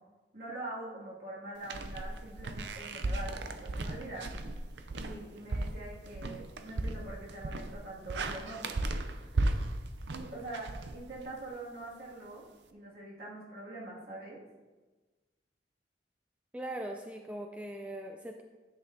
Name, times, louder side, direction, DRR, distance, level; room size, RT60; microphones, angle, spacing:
voice 1, 0.3-4.3 4.9-8.8 10.1-14.4, right 2 dB, 55° right, -6 dB, 2.3 m, -44 dB
sound 1, 1.6-11.5, right 2 dB, 80° right, 0.6 m, -36 dB
voice 2, 16.5-18.4, right 1 dB, 10° right, 2 dB, 0.4 m, -40 dB
10.5 x 7.8 x 2.7 m, 1.3 s
head